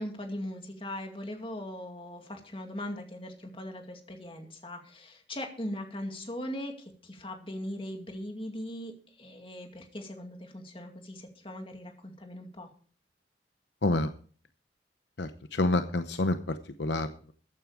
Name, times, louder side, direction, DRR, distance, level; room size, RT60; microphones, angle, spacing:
voice 1, 0.0-8.9 9.2-12.7, left 1 dB, 30° left, 4 dB, 2.3 m, -39 dB
voice 2, 13.8-14.1 15.2-17.1, left 2 dB, 70° left, 9 dB, 0.8 m, -28 dB
14.5 x 9.4 x 4.9 m, 0.43 s
head